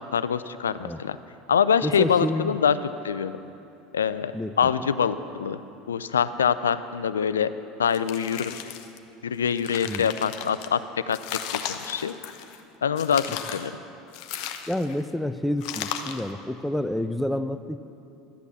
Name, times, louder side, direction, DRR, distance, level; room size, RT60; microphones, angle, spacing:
voice 1, 0.1-1.2 1.5-2.8 3.0-3.3 3.9-4.3 4.6-5.6 5.9-7.5 7.8-8.6 9.2-10.8 11.1-11.2 11.7-12.1 12.8-13.7, left 7 dB, 90° left, 14 dB, 0.4 m, -24 dB
voice 2, 1.8-2.6 4.3-4.7 9.9-10.1 14.7-17.8, left 1 dB, 5° left, 11 dB, 0.5 m, -29 dB
sound 1, 7.9-9.0 9.4-10.7 11.1-12.6 13.0-13.7 14.1-15.0 15.6-16.3, left 10 dB, 65° left, 0.7 m, -35 dB
11.5 x 8.2 x 6.9 m, 2.8 s
hypercardioid pair, 80°, 0 cm